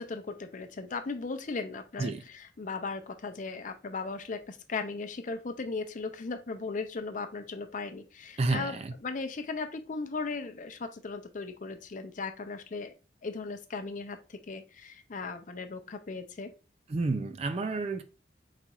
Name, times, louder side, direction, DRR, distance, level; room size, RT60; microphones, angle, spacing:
voice 1, 0.0-12.9 13.2-16.5, left 4 dB, 45° left, 0.5 m, -37 dB
voice 2, 8.4-8.9 16.9-18.0, right 3 dB, 35° right, 0.4 m, -30 dB
4.5 x 4.1 x 2.3 m
head